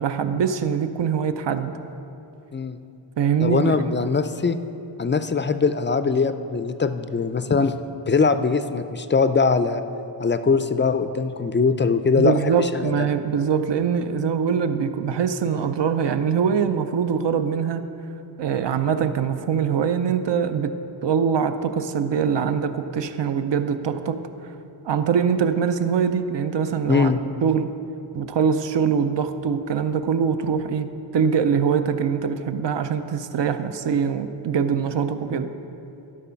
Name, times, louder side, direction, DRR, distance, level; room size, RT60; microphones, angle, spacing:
voice 1, 0.0-1.7 3.2-3.8 12.2-17.8 18.4-20.7 21.0-24.2 24.8-27.1 27.4-27.7 28.1-35.5, right 7 dB, 70° right, 9 dB, 0.6 m, -23 dB
voice 2, 3.4-4.6 5.0-7.7 8.1-9.8 10.2-13.1 26.9-27.2, left 4 dB, 25° left, 11 dB, 0.3 m, -21 dB
12.0 x 5.2 x 5.7 m, 2.9 s
wide cardioid pair, 80°, 45 cm